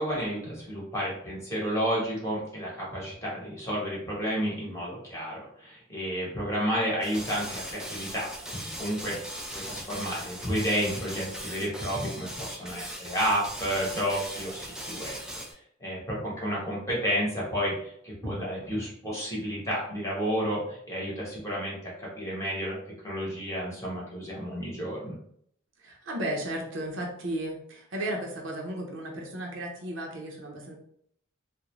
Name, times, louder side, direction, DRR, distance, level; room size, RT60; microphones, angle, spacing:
voice 1, 0.0-9.2 9.5-15.2 15.8-22.8 23.0-25.1, equal, 15° left, -5 dB, 0.9 m, -31 dB
sound 1, 7.0-15.5, equal, 5° right, 0.3 m, -39 dB
voice 2, 25.8-30.8, right 1 dB, 70° right, 0 dB, 0.6 m, -34 dB
2.4 x 2.1 x 3.0 m, 0.67 s
head